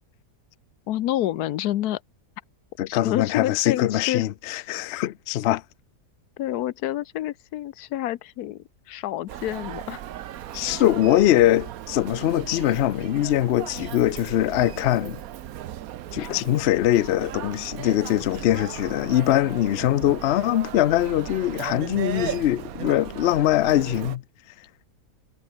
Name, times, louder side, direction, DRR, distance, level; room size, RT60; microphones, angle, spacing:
voice 1, 0.9-2.0 2.9-4.2 6.4-10.0, left 13 dB, 70° left, 1.2 m, -28 dB
voice 2, 2.8-5.6 10.5-15.2 16.1-24.2, left 13 dB, 90° left, 0.5 m, -22 dB
Human voice, 9.3-24.2, right 12 dB, 65° right, 1.1 m, -37 dB
omnidirectional pair, 1.8 m